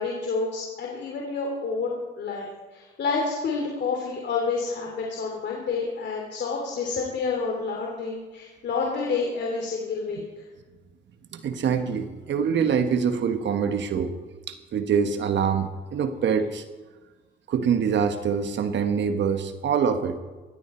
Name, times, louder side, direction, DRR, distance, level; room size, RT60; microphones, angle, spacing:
voice 1, 0.0-2.5 2.7-10.2, left 4 dB, 60° left, -1 dB, 3.0 m, -29 dB
voice 2, 11.3-14.1 14.5-16.6 17.5-20.2, right 7 dB, 65° right, 8 dB, 1.3 m, -25 dB
18.0 x 14.0 x 4.4 m, 1.3 s
cardioid pair, 90°, 20 cm